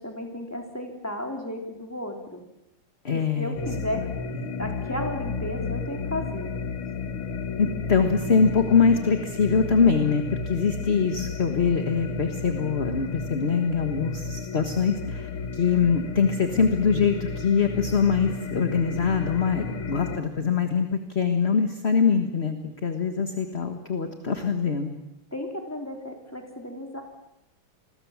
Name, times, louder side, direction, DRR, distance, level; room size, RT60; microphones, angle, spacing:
voice 1, 0.0-2.4 3.1-4.1 4.6-6.5 19.7-20.1 25.3-27.0, left 1 dB, 5° left, 3 dB, 3.6 m, -34 dB
voice 2, 3.0-3.6 4.4-4.5 7.6-24.9, left 6 dB, 35° left, 7 dB, 1.7 m, -23 dB
sound 1, 3.6-20.2, left 4 dB, 90° left, 2.3 m, -33 dB
29.0 x 21.5 x 7.4 m, 0.85 s
omnidirectional pair, 2.2 m